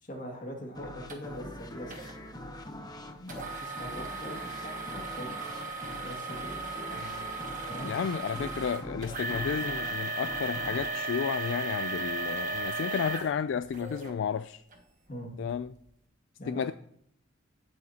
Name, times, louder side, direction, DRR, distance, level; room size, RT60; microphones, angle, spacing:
voice 1, 0.0-1.9 3.2-5.6 6.0-6.5 7.7-7.9 15.1-15.3 16.4-16.6, equal, 45° left, 2.2 m, -42 dB
sound 1, 0.8-12.2, left 1 dB, 20° left, 0.9 m, -44 dB
sound 2, 1.1-1.2 1.9-2.1 3.3-14.1 14.7-14.8 15.4-15.5, right 3 dB, 45° right, 1.3 m, -36 dB
voice 2, 6.9-7.3 7.8-14.6 15.4-15.7 16.5-16.7, left 7 dB, 70° left, 0.3 m, -32 dB
16.5 x 7.7 x 2.8 m
head